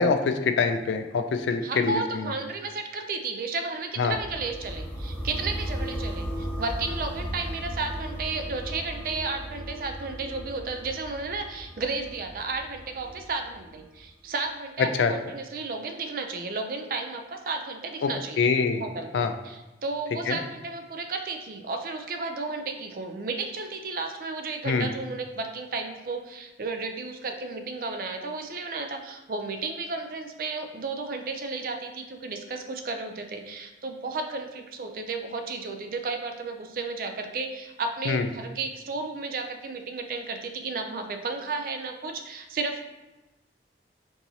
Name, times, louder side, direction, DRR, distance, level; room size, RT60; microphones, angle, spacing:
voice 1, 0.0-2.3 4.0-4.2 14.8-15.1 18.0-18.1 18.4-18.8 19.1-19.3 20.3-20.4 24.6-24.9 38.1-38.2, left 5 dB, 85° left, 8 dB, 0.3 m, -24 dB
voice 2, 1.6-18.5 18.8-42.8, right 3 dB, 50° right, 5 dB, 0.4 m, -33 dB
sound 1, 4.1-14.0, equal, 10° left, 0.6 m, -36 dB
4.6 x 2.7 x 2.7 m, 1.1 s
head